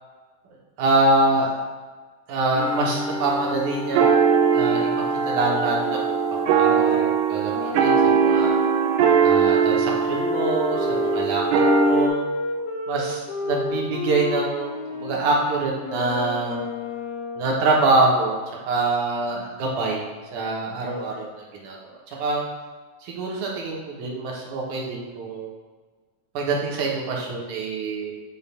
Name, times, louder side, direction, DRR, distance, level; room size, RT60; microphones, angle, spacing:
voice 1, 0.8-1.5 2.3-4.9 5.3-8.5 9.2-12.2 12.9-16.6 17.4-18.4 18.7-20.1 20.3-21.8 22.1-22.5 23.0-25.5 26.3-28.1, right 2 dB, 70° right, -2 dB, 2.2 m, -25 dB
sound 1, 2.6-12.1, right 5 dB, 90° right, 1.7 m, -21 dB
Wind instrument woodwind instrument, 7.5-17.5, left 3 dB, 90° left, 1.5 m, -31 dB
7.2 x 2.5 x 5.5 m, 1.4 s
omnidirectional pair, 4.1 m